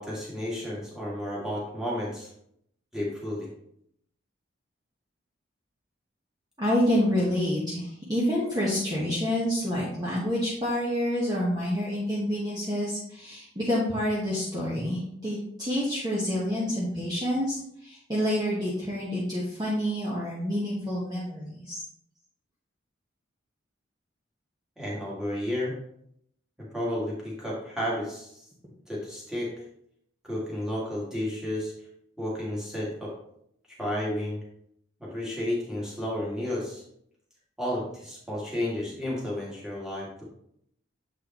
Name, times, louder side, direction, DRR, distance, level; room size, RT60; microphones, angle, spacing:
voice 1, 0.0-2.3 2.9-3.5 24.8-25.7 26.7-28.5 28.9-29.5 30.2-31.7 32.2-33.1 33.8-34.4 35.0-36.8 37.6-40.2, left 1 dB, 5° right, -6 dB, 2.0 m, -32 dB
voice 2, 6.6-21.8, equal, 20° right, -7 dB, 1.2 m, -28 dB
7.8 x 4.8 x 3.0 m, 0.72 s
head